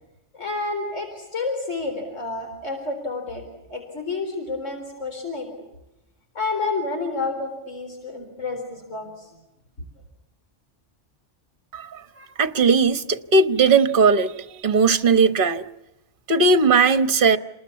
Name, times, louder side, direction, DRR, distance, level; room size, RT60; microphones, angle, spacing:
voice 1, 0.3-3.4 3.7-5.5 6.3-9.3, left 3 dB, 85° left, 4 dB, 4.4 m, -29 dB
voice 2, 12.2-14.3 14.6-15.6 16.3-17.4, right 4 dB, 45° right, 10 dB, 1.3 m, -18 dB
28.5 x 20.0 x 8.4 m, 0.95 s
omnidirectional pair, 1.2 m